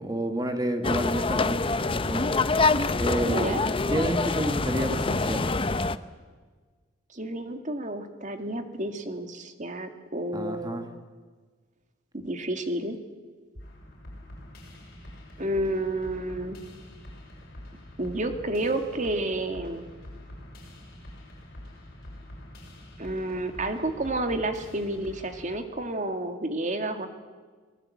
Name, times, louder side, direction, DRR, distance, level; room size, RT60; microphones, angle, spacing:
voice 1, 0.0-2.4 2.9-3.5 3.9-5.5 10.3-10.8, right 1 dB, 20° right, 6 dB, 1.6 m, -30 dB
sound 1, 0.8-6.0, left 3 dB, 25° left, 0.7 m, -25 dB
voice 2, 3.3-3.6 7.1-10.9 12.1-13.0 15.4-16.6 18.0-19.9 23.0-27.1, right 1 dB, 40° right, 6 dB, 2.1 m, -30 dB
sound 2, 13.5-25.5, left 1 dB, 50° left, 7.3 m, -45 dB
26.5 x 19.0 x 8.5 m, 1.5 s
head